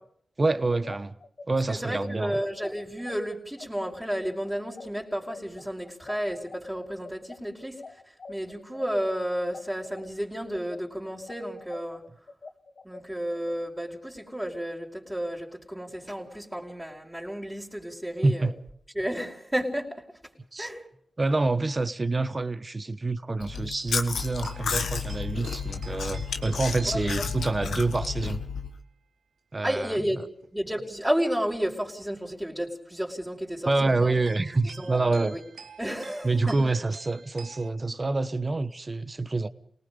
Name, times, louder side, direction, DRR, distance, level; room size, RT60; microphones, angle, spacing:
voice 1, 0.4-1.2 1.5-2.3 18.2-18.5 20.5-20.7 21.2-28.4 29.5-30.2 33.6-35.4 36.2-39.5, right 3 dB, 40° right, 1.1 m, -27 dB
sound 1, 0.7-10.1 10.5-13.6, left 3 dB, 60° left, 1.2 m, -45 dB
voice 2, 1.7-7.8 8.3-12.0 12.8-18.5 18.9-20.0 20.6-20.8 26.8-27.2 27.7-27.8 29.6-34.1 34.8-35.4 35.8-36.7, equal, 10° right, 4.6 m, -32 dB
Chewing mastication, 23.4-28.7, left 6 dB, 85° left, 1.5 m, -32 dB
sound 2, 24.1-28.6 30.2-30.5 32.3-32.4 34.2-37.7, right 5 dB, 85° right, 1.4 m, -49 dB
29.0 x 19.0 x 5.3 m
cardioid pair, 45°, 0 cm